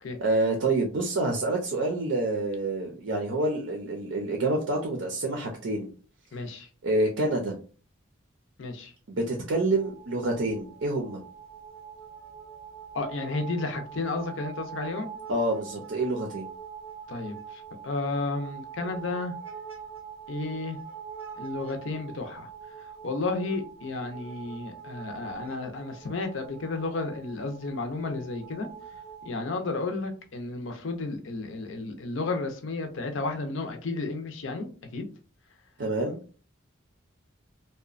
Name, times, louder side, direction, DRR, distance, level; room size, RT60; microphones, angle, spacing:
voice 1, 0.2-5.9 6.8-7.5 9.1-11.2 15.3-16.5 35.8-36.2, right 2 dB, 70° right, 2 dB, 0.5 m, -27 dB
voice 2, 6.3-6.7 8.6-8.9 12.9-15.1 17.1-19.3 20.3-20.8 21.4-22.5 23.0-28.7 29.2-35.0, left 3 dB, 70° left, 6 dB, 0.5 m, -32 dB
sound 1, 9.8-29.3, right 7 dB, 10° right, 0.7 m, -44 dB
2.8 x 2.1 x 2.4 m, 0.38 s
head